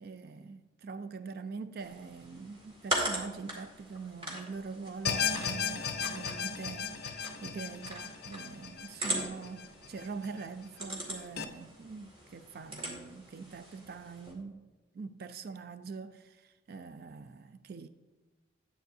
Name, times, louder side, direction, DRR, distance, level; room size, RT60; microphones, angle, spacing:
voice 1, 0.0-14.7 14.9-17.9, right 4 dB, 50° right, 0.4 m, -44 dB
sound 1, 1.8-14.3, right 1 dB, 30° right, 2.1 m, -41 dB
sound 2, 5.0-10.3 10.6-10.7 11.4-11.5, left 7 dB, 55° left, 0.5 m, -36 dB
12.0 x 8.8 x 2.7 m
head